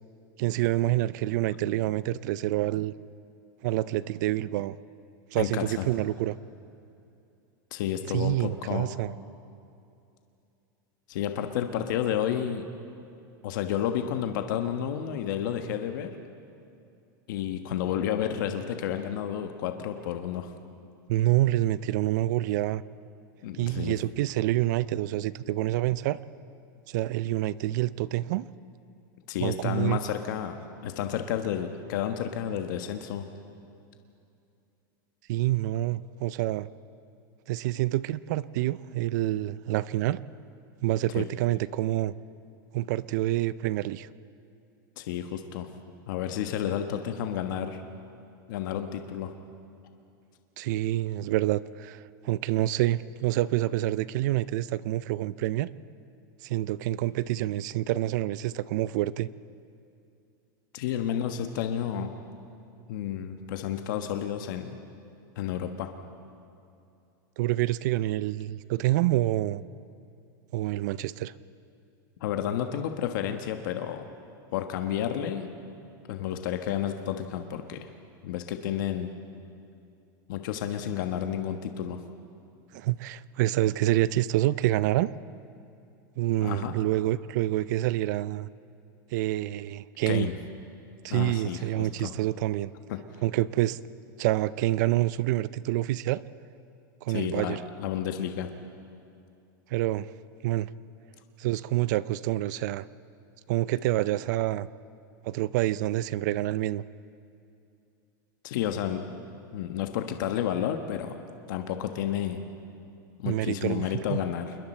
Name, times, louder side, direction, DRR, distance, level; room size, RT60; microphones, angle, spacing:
voice 1, 0.4-2.9 3.6-4.8 5.3-6.4 8.1-9.1 21.1-22.8 23.6-26.2 26.9-28.5 29.4-30.0 35.3-36.7 37.5-40.2 40.8-42.1 42.7-44.1 50.6-55.7 56.4-59.3 67.4-69.6 70.5-71.3 82.7-85.1 86.2-88.5 89.1-90.3 91.0-92.7 93.2-93.8 94.2-96.2 97.0-97.6 99.7-100.1 100.4-100.7 101.4-102.9 103.5-104.7 105.2-106.8 113.3-114.2, right 15 dB, 55° right, 18 dB, 0.5 m, -27 dB
voice 2, 5.4-5.9 7.7-8.9 11.1-12.7 13.4-16.2 17.3-20.5 23.4-24.0 29.3-33.3 41.2-41.3 45.0-45.7 46.1-47.8 48.5-49.3 60.7-62.1 62.9-64.8 65.4-65.9 72.2-74.1 74.5-75.5 76.1-77.9 78.2-79.1 80.3-82.0 86.4-86.7 90.1-90.3 91.1-92.1 92.9-93.0 97.1-98.5 108.4-109.0 109.5-111.2 111.5-112.4 113.2-114.6, left 10 dB, 65° left, 6 dB, 1.3 m, -31 dB
28.0 x 21.5 x 4.4 m, 2.6 s
supercardioid pair, 160°, 11 cm